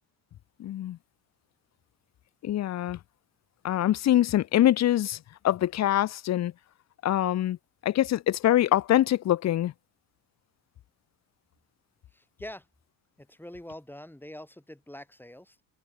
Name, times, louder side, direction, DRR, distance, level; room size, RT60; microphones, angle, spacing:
voice 1, 0.6-1.0 2.4-3.0 3.6-5.2 5.4-6.5 7.0-7.6 7.8-9.7, left 13 dB, 40° left, 0.6 m, -24 dB
voice 2, 12.1-12.7 13.2-15.6, left 1 dB, 5° left, 7.5 m, -44 dB
supercardioid pair, 70°, 41 cm